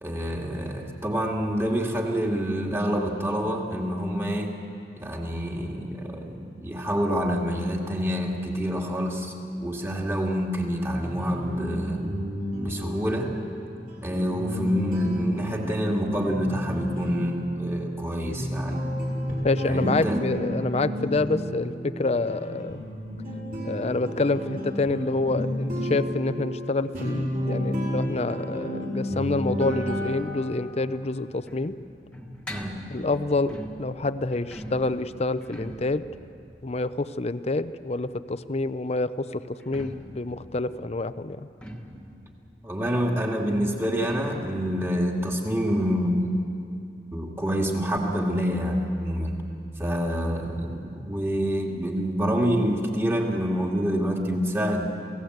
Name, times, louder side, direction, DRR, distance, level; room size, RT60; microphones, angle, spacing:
voice 1, 0.0-4.5 5.0-12.0 12.6-13.4 14.0-18.8 19.7-20.2 23.5-23.6 32.5-32.9 42.6-46.4 47.1-49.4 49.8-54.9, equal, 15° right, 0 dB, 2.2 m, -27 dB
sound 1, 10.8-30.7, equal, 55° right, 5.7 m, -32 dB
voice 2, 19.4-22.8 23.6-31.7 32.9-36.0 36.6-41.5, left 3 dB, 35° left, 13 dB, 0.6 m, -27 dB
sound 2, 30.6-38.3 39.5-46.8 47.1-47.2 47.5-47.6 48.2-48.3, equal, 5° left, 1.6 m, -44 dB
28.0 x 17.0 x 8.0 m, 2.6 s
head